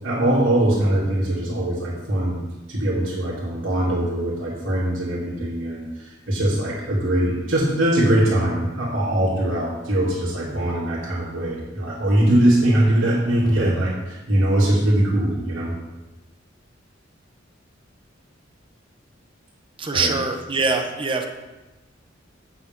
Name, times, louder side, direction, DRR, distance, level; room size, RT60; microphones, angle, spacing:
voice 1, 0.0-2.4 2.7-15.7 19.9-20.1, right 1 dB, 90° right, -9 dB, 2.5 m, -21 dB
voice 2, 19.8-21.3, right 4 dB, 25° right, 4 dB, 0.8 m, -23 dB
8.6 x 7.4 x 3.6 m, 1.1 s
head